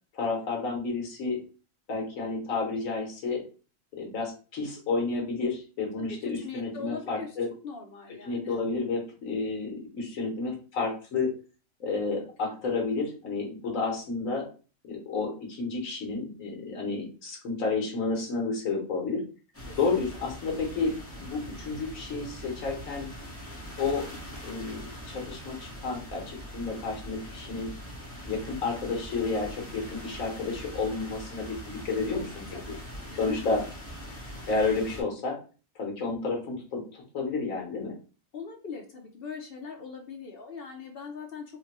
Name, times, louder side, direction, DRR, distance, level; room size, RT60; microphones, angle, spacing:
voice 1, 0.1-1.4 1.9-3.4 4.0-7.5 8.2-11.3 11.8-14.5 14.8-19.2 19.8-20.9 21.2-23.1 23.8-24.1 24.4-27.7 28.2-32.5 33.2-33.6 34.5-35.4 35.7-37.9, left 4 dB, 75° left, 1 dB, 1.4 m, -31 dB
voice 2, 6.0-7.4 7.6-8.6 12.4-12.6 13.7-13.9 19.7-20.2 32.5-32.8 33.1-33.5 34.1-34.3 38.3-41.4, left 6 dB, 55° left, 2 dB, 0.7 m, -41 dB
sound 1, 19.5-35.0, equal, 10° left, 0.8 m, -42 dB
3.8 x 2.2 x 2.9 m, 0.36 s
omnidirectional pair, 1.4 m